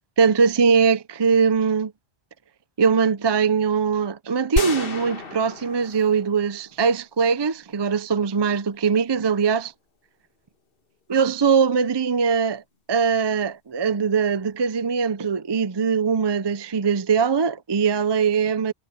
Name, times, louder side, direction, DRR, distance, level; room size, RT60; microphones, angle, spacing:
voice 1, 0.2-1.9 2.8-9.7 11.1-12.6 12.9-18.7, right 6 dB, 40° right, 0.4 m, -21 dB
sound 1, 4.6-6.8, left 4 dB, 55° left, 1.7 m, -30 dB
omnidirectional pair, 1.1 m